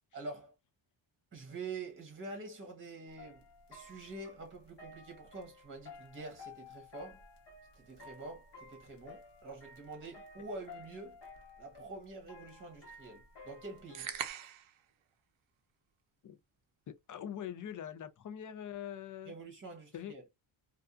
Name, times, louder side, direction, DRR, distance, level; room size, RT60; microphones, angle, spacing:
voice 1, 0.1-0.5 1.3-3.4 3.7-7.2 7.7-11.2 11.6-14.1 14.4-14.5 19.2-20.2, right 3 dB, 25° right, 0.9 m, -46 dB
sound 1, 3.1-14.3, left 3 dB, 60° left, 1.0 m, -54 dB
sound 2, 14.0-14.8, right 10 dB, 75° right, 0.6 m, -40 dB
voice 2, 16.9-19.3 19.9-20.1, left 9 dB, 40° left, 0.4 m, -43 dB
2.6 x 2.3 x 2.3 m
wide cardioid pair, 120°, 49 cm